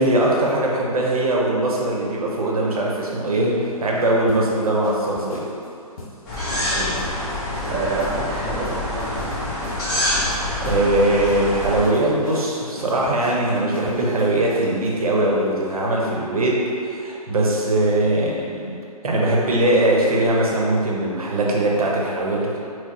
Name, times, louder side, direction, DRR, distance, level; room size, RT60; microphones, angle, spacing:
voice 1, 0.0-5.5 10.3-18.8 19.0-22.6, right 1 dB, 70° right, -3 dB, 0.8 m, -21 dB
sound 1, 2.9-14.9, left 1 dB, 65° left, 0.6 m, -40 dB
sound 2, 6.3-11.8, left 1 dB, 30° left, 1.0 m, -26 dB
voice 2, 6.7-7.1 7.6-9.3, right 2 dB, 10° right, -10 dB, 0.4 m, -28 dB
4.5 x 2.0 x 2.9 m, 2.6 s
figure-of-eight pair, 135°, 20 cm